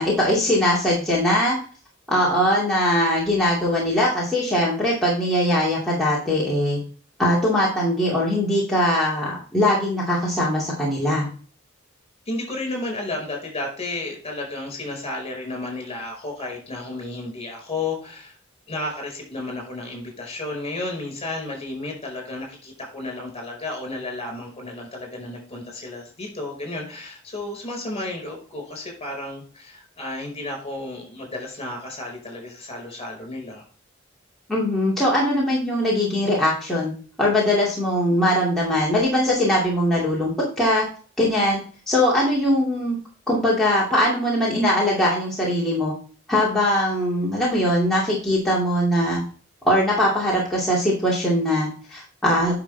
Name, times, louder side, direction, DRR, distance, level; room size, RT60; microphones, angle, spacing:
voice 1, 0.0-1.6 2.1-6.8 7.2-11.3 34.5-36.9 37.2-40.3 40.6-40.8 41.2-41.6 41.9-43.0 43.3-45.9 46.3-49.2 49.6-52.6, left 1 dB, ahead, -7 dB, 2.5 m, -21 dB
voice 2, 12.2-18.4 18.7-33.6, left 2 dB, 30° left, 2 dB, 5.1 m, -32 dB
10.5 x 5.9 x 3.4 m, 0.40 s
head